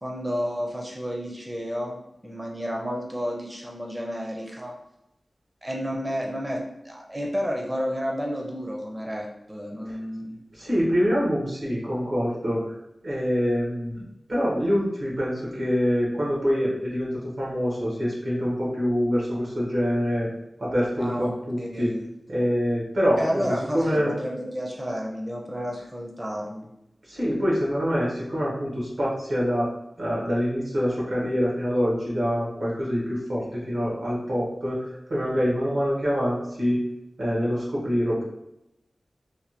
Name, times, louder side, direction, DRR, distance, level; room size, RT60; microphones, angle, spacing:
voice 1, 0.0-4.7 5.6-10.3 21.0-21.3 21.6-22.0 23.2-26.7, equal, 20° right, -1 dB, 0.5 m, -31 dB
voice 2, 10.5-12.8 13.0-14.0 14.3-17.1 17.4-20.3 20.6-21.9 22.3-23.4 23.7-24.1 27.0-29.7 30.0-36.8 37.2-38.2, equal, 85° right, -5 dB, 1.2 m, -25 dB
3.2 x 2.1 x 2.8 m, 0.86 s
wide cardioid pair, 55°, 0 cm